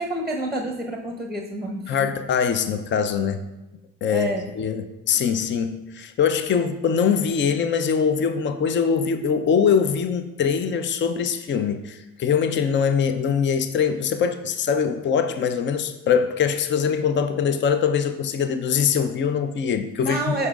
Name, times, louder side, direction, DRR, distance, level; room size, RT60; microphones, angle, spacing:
voice 1, 0.0-2.1 4.1-4.5 20.0-20.5, right 1 dB, ahead, 1 dB, 0.9 m, -28 dB
voice 2, 1.9-3.5 4.0-20.4, left 7 dB, 30° left, 9 dB, 0.6 m, -23 dB
14.0 x 5.2 x 2.5 m, 0.99 s
figure-of-eight pair, 55°, 41 cm